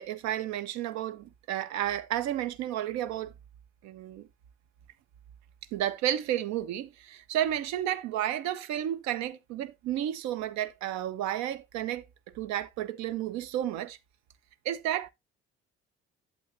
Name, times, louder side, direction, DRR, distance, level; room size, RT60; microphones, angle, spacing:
voice 1, 0.0-3.3 3.8-4.3 5.7-12.0 12.3-14.0 14.6-15.1, right 11 dB, 55° right, 0.8 m, -32 dB
8.3 x 7.9 x 2.7 m
figure-of-eight pair, 50°, 33 cm